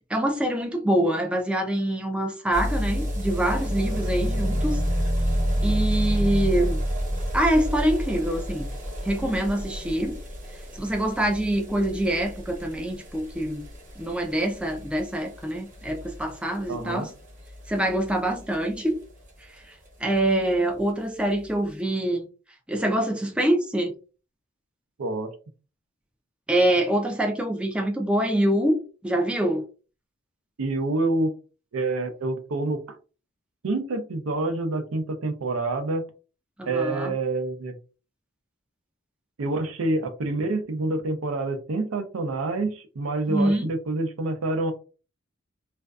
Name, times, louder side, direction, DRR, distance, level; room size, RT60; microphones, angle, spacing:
voice 1, 0.1-4.8 5.6-6.8 7.3-8.7 9.0-10.2 10.7-13.7 14.0-17.1 17.7-19.0 19.5-19.7 20.0-22.3 22.7-24.0 26.5-29.7 36.6-37.1 43.3-43.7, right 1 dB, 5° right, 0.3 m, -25 dB
sound 1, 2.5-19.3 19.6-19.7 19.9-20.0 20.2-20.3 20.5-20.6 21.3-21.4, equal, 40° right, 0.7 m, -29 dB
voice 2, 16.7-17.1 25.0-25.3 30.6-31.3 31.7-33.0 33.6-36.0 36.6-37.7 39.4-44.7, right 2 dB, 90° right, 0.5 m, -27 dB
2.5 x 2.3 x 2.2 m
head